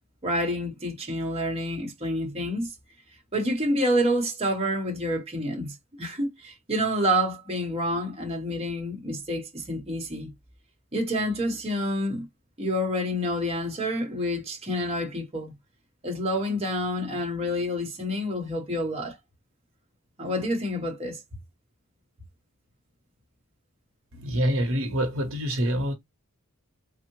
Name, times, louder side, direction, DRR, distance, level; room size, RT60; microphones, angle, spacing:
voice 1, 0.2-2.7 3.3-10.3 10.9-12.3 12.6-15.5 16.0-19.2 20.2-21.2, equal, 30° right, 0.9 m, -28 dB
voice 2, 24.1-25.9, equal, 70° right, 0.8 m, -26 dB
3.4 x 2.0 x 2.9 m
head